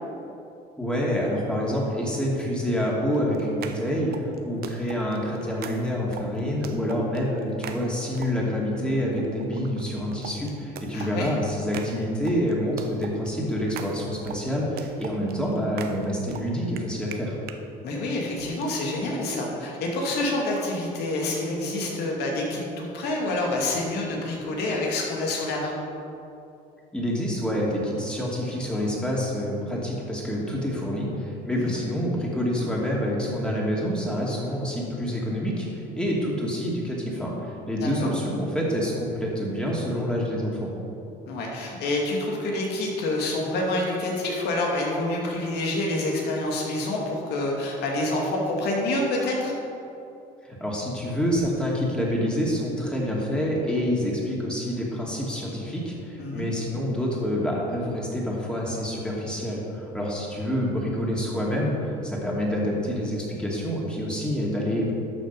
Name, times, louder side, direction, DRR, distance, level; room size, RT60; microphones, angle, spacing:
voice 1, 0.8-17.4 26.9-40.7 50.4-64.9, equal, 5° left, -4 dB, 2.6 m, -27 dB
sound 1, 3.1-8.6 9.1-17.6 18.4-18.6, right 7 dB, 65° right, 0.9 m, -42 dB
voice 2, 10.9-11.3 17.8-25.8 31.5-31.7 37.8-38.1 41.3-49.5 56.2-56.5, left 2 dB, 80° left, -2 dB, 2.5 m, -27 dB
12.0 x 6.5 x 5.5 m, 2.7 s
cardioid pair, 110°, 17 cm